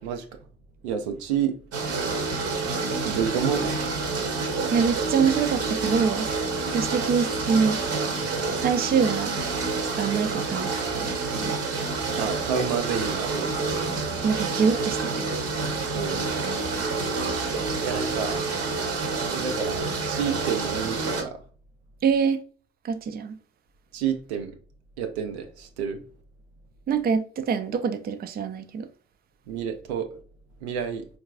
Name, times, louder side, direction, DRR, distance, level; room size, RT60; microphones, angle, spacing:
voice 1, 0.8-1.6 3.0-3.9 12.1-13.6 15.9-16.2 17.8-18.4 19.3-21.4 23.9-24.6 25.0-26.0 29.5-30.2 30.6-31.1, right 7 dB, 85° right, 0.5 m, -29 dB
sound 1, 1.7-21.2, right 3 dB, 50° right, 0.8 m, -28 dB
voice 2, 4.7-6.3 6.7-7.8 8.6-9.3 10.0-11.6 14.2-15.2 22.0-22.4 22.8-23.4 26.9-28.9, right 6 dB, 30° right, 0.4 m, -25 dB
4.5 x 2.3 x 2.3 m
figure-of-eight pair, 45°, 32 cm